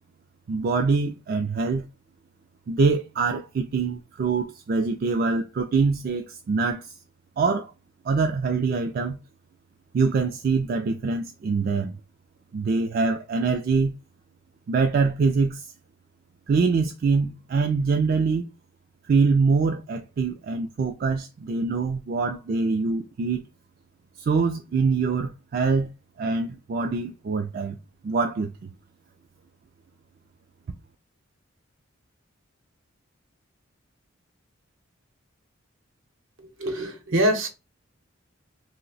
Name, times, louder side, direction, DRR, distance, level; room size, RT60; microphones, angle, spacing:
voice 1, 0.5-1.9 2.7-6.9 7.4-7.7 8.0-9.2 9.9-11.9 12.5-13.9 14.7-15.6 16.5-18.4 19.1-23.4 24.2-25.9 26.2-27.8 28.0-28.7, right 4 dB, 50° right, 0.3 m, -24 dB
voice 2, 36.4-37.5, equal, 75° right, 0.8 m, -24 dB
2.7 x 2.1 x 3.9 m
head